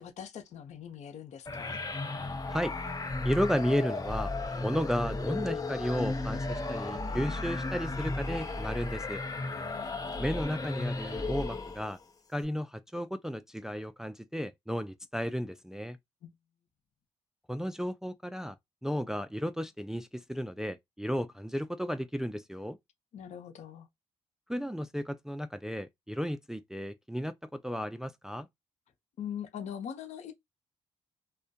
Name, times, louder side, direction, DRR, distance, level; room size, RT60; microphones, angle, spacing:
voice 1, 0.0-1.8 9.5-10.2 16.2-16.3 23.1-23.9 29.2-30.3, left 8 dB, 70° left, 0.6 m, -42 dB
sound 1, 1.5-12.0, left 3 dB, 30° left, 0.7 m, -34 dB
voice 2, 3.2-4.3 4.6-9.2 10.2-12.0 12.3-16.0 17.5-18.6 18.8-22.8 24.5-28.5, equal, 5° right, 0.3 m, -33 dB
2.2 x 2.1 x 2.7 m
supercardioid pair, 65°, 12 cm